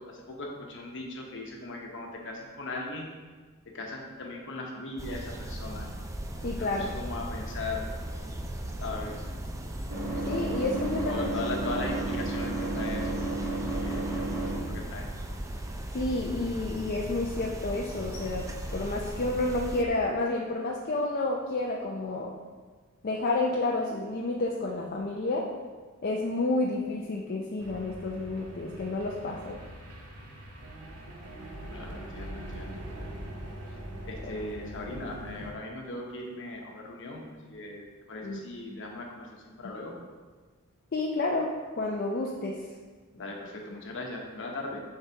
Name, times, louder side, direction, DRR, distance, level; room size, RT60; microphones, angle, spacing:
voice 1, 0.0-3.1 3.7-5.9 6.5-7.9 8.8-9.2 11.0-13.2 13.8-15.1 31.7-33.2 33.7-33.8 34.0-39.9 43.1-44.8, left 2 dB, 60° left, 0 dB, 1.0 m, -38 dB
sound 1, 5.0-19.8, right 1 dB, 15° right, 0.4 m, -37 dB
voice 2, 6.4-6.9 10.3-11.3 15.9-22.3 23.0-25.5 26.0-29.6 34.2-34.4 38.2-38.4 38.7-38.8 40.9-41.5 41.8-42.6, left 2 dB, 45° left, -1 dB, 0.5 m, -30 dB
sound 2, 8.9-14.8, right 2 dB, 60° right, 1.9 m, -33 dB
sound 3, 27.6-35.5, right 1 dB, 80° right, 0.9 m, -42 dB
6.9 x 5.8 x 2.8 m, 1.4 s
head